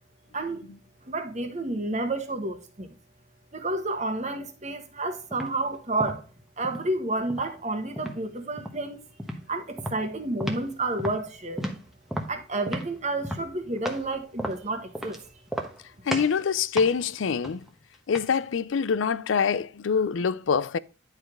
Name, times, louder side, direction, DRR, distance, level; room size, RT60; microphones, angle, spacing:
voice 1, 1.1-2.9 3.5-6.2 6.6-9.1 9.5-11.8 12.3-15.2, right 2 dB, 35° right, 1.3 m, -30 dB
sound 1, 5.3-5.6 6.0-6.9 7.3-8.2 8.6-8.9 9.2-9.4 9.8-10.7 11.0-14.1 14.4-15.2 15.5-15.8 16.1-16.4 16.8-18.4, equal, ahead, 1.0 m, -34 dB
voice 2, 16.1-17.6 18.1-20.8, left 6 dB, 75° left, 0.4 m, -25 dB
10.5 x 4.9 x 3.6 m
head